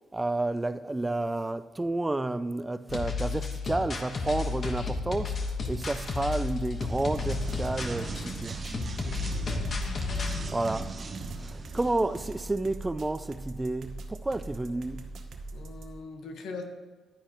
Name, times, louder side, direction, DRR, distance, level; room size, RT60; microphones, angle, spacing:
voice 1, 0.1-8.6 10.5-10.9 11.4-15.1, right 2 dB, 15° right, 0.3 m, -30 dB
sound 1, 2.9-10.4, left 4 dB, 45° left, 1.2 m, -33 dB
sound 2, 5.3-16.0, right 2 dB, 65° right, 0.9 m, -42 dB
sound 3, 6.6-12.3, right 3 dB, 35° right, 0.9 m, -39 dB
voice 2, 9.3-9.8 15.5-16.6, left 4 dB, 75° left, 1.2 m, -42 dB
10.0 x 9.8 x 3.0 m
cardioid pair, 90°, 0 cm